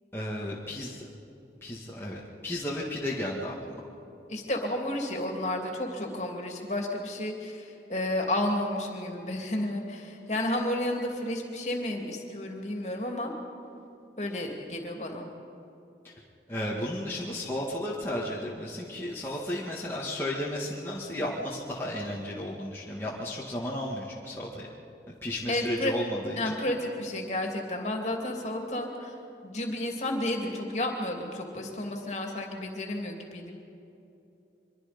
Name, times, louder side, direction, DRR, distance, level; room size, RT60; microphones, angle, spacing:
voice 1, 0.1-1.1 1.6-3.8 16.0-16.1 16.5-24.7 25.2-26.5, left 1 dB, 15° left, -5 dB, 1.9 m, -34 dB
voice 2, 4.3-13.3 14.2-15.3 25.5-25.9 26.4-29.2 29.4-33.5, left 1 dB, 40° left, 2 dB, 2.8 m, -32 dB
24.5 x 23.5 x 5.3 m, 2.9 s
head